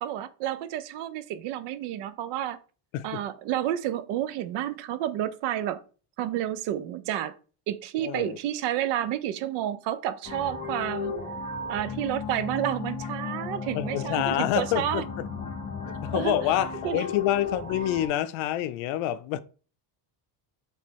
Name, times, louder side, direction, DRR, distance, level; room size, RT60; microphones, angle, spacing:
voice 1, 0.0-2.6 3.0-5.8 6.2-7.3 7.7-11.2 11.7-15.0 16.1-16.3 16.8-17.1, right 11 dB, 65° right, 0.5 m, -30 dB
voice 2, 8.0-8.4 13.7-15.3 15.9-19.4, left 12 dB, 80° left, 0.5 m, -27 dB
sound 1, 10.2-18.1, left 5 dB, 20° left, 0.7 m, -35 dB
3.4 x 3.0 x 4.4 m
cardioid pair, 175°, 46 cm